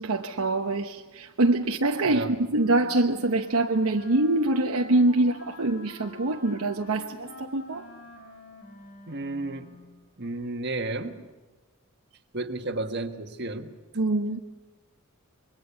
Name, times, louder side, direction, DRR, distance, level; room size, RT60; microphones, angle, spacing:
voice 1, 0.0-7.9 14.0-14.4, right 2 dB, 80° right, 1.0 m, -24 dB
Wind instrument woodwind instrument, 2.5-10.0, left 2 dB, 50° left, 3.8 m, -47 dB
voice 2, 9.1-9.8 10.2-11.2 12.3-13.7, right 2 dB, 50° right, 1.5 m, -32 dB
26.0 x 21.5 x 7.0 m
head